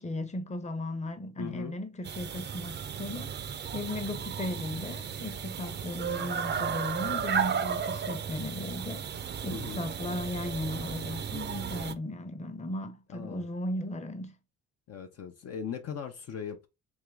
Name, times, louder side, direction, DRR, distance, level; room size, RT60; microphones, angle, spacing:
voice 1, 0.0-9.1 9.4-14.3, left 1 dB, 25° left, 0.8 m, -36 dB
voice 2, 1.4-1.7 9.5-9.8 13.1-13.4 14.9-16.7, left 7 dB, 55° left, 0.6 m, -39 dB
sound 1, 2.0-11.9, right 7 dB, 35° right, 0.5 m, -34 dB
3.6 x 3.0 x 3.4 m
cardioid pair, 90°, 30 cm